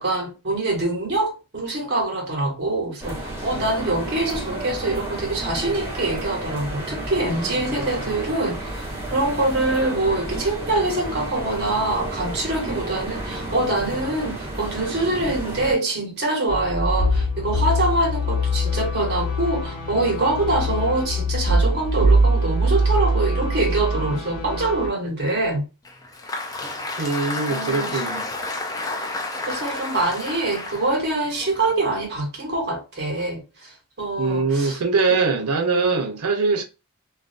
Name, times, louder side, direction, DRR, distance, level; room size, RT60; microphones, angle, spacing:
voice 1, 0.0-8.8 9.1-25.6 27.0-27.1 27.5-28.0 29.5-34.8, right 2 dB, 50° right, 1.1 m, -24 dB
sound 1, 3.0-15.7, right 1 dB, 10° right, 1.2 m, -32 dB
sound 2, 16.5-24.9, equal, 75° left, 0.8 m, -22 dB
Applause, 25.8-32.2, left 2 dB, 15° left, 0.4 m, -31 dB
voice 2, 27.0-28.2 34.2-36.6, right 4 dB, 85° right, 0.7 m, -22 dB
2.5 x 2.2 x 2.5 m
head